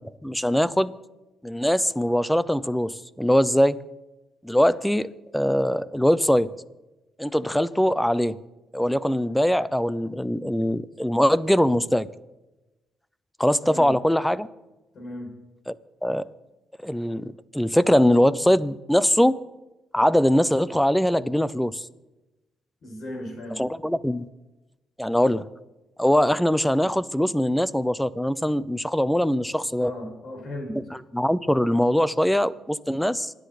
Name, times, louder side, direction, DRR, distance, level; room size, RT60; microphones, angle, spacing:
voice 1, 0.2-0.9 1.4-3.8 4.4-5.1 5.3-6.5 7.2-8.4 8.7-12.1 13.4-14.5 15.7-15.8 16.0-16.3 16.8-19.4 19.9-21.9 23.6-24.3 25.0-25.4 26.0-29.9 30.7-33.3, equal, 5° left, 17 dB, 0.6 m, -22 dB
voice 2, 13.6-14.0 14.9-15.3 22.8-23.6 29.8-30.8, left 1 dB, 55° left, 1 dB, 6.6 m, -36 dB
27.0 x 10.5 x 4.2 m, 1.0 s
cardioid pair, 90°, 0 cm